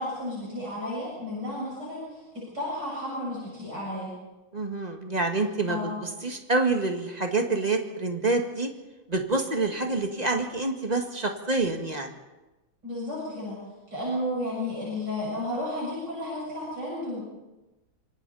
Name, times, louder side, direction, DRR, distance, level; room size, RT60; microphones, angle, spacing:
voice 1, 0.0-4.1 5.7-5.9 12.8-13.6 13.9-17.2, left 1 dB, 55° right, -6 dB, 8.2 m, -32 dB
voice 2, 4.5-5.8 6.2-8.7 9.1-12.1, right 3 dB, 20° right, 3 dB, 1.9 m, -27 dB
26.5 x 24.5 x 4.2 m, 1.1 s
omnidirectional pair, 2.2 m